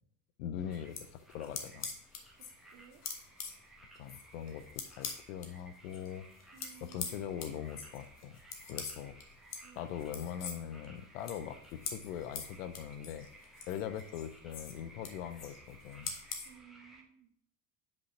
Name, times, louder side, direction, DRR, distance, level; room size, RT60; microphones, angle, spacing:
voice 1, 0.4-1.9 4.0-6.3 6.8-8.4 8.7-9.2 9.8-13.3 13.7-16.1, left 9 dB, 55° left, 13 dB, 0.7 m, -41 dB
sound 1, 0.6-17.0, right 2 dB, ahead, 1.5 m, -58 dB
sound 2, 0.7-5.5 5.8-16.5, left 6 dB, 35° left, 1.4 m, -45 dB
voice 2, 2.7-3.0 6.5-7.4 9.6-9.9 16.4-17.3, right 9 dB, 45° right, 7 dB, 1.1 m, -57 dB
5.4 x 5.3 x 5.8 m, 0.69 s
figure-of-eight pair, 70°, 45 cm